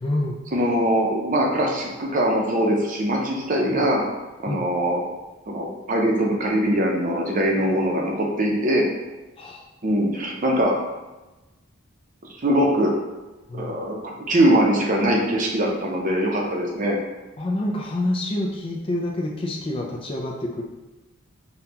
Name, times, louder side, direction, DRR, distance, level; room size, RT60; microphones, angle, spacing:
voice 1, 0.0-0.4 3.7-3.8 4.5-4.7 7.6-7.8 9.4-9.6 13.5-13.8 17.4-20.6, left 1 dB, 25° left, 0 dB, 0.3 m, -27 dB
voice 2, 0.5-4.0 4.4-5.1 5.5-8.9 9.8-10.7 12.4-12.9 13.5-17.0, right 1 dB, 40° right, -1 dB, 0.6 m, -22 dB
5.2 x 2.3 x 2.8 m, 1.1 s
head